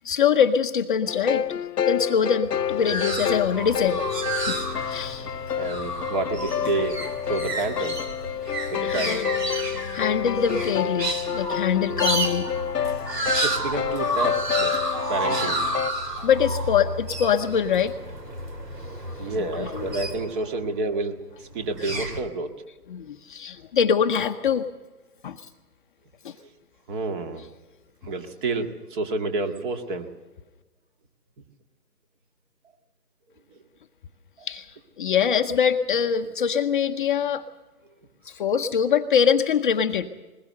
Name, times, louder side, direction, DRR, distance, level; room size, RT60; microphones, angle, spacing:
voice 1, 0.0-1.6 1.9-4.0 4.3-4.6 4.9-5.3 8.8-9.3 9.9-12.5 16.2-17.9 19.4-19.8 22.9-24.7 25.2-25.5 26.2-26.3 34.4-37.5 38.2-40.1, left 7 dB, 35° left, 6 dB, 0.8 m, -23 dB
sound 1, 1.1-15.9, left 9 dB, 80° left, 0.8 m, -29 dB
sound 2, 2.4-20.6 21.5-22.2, right 1 dB, 85° right, 3.6 m, -31 dB
voice 2, 5.5-7.0 7.3-8.0 8.7-9.4 13.2-14.8 15.1-15.8 19.2-22.5 26.4-26.5 26.9-27.5 28.0-30.1 33.5-33.6 34.4-34.5, right 3 dB, 30° right, 6 dB, 2.0 m, -29 dB
21.5 x 20.5 x 6.7 m, 1.2 s
hypercardioid pair, 145°, 47 cm